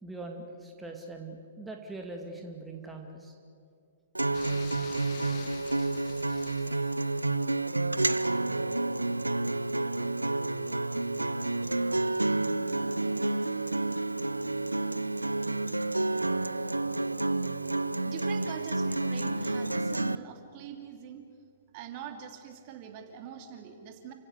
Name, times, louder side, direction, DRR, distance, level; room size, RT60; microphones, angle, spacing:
voice 1, 0.0-3.3, right 2 dB, 5° right, 2 dB, 2.3 m, -43 dB
Acoustic guitar, 4.1-20.2, right 2 dB, 90° right, 0.6 m, -30 dB
sound 1, 4.3-7.5, left 13 dB, 40° left, 1.0 m, -48 dB
voice 2, 18.0-21.2 21.7-24.1, right 8 dB, 40° right, 5 dB, 2.8 m, -43 dB
30.0 x 16.5 x 8.1 m, 2.3 s
figure-of-eight pair, 115°, 0 cm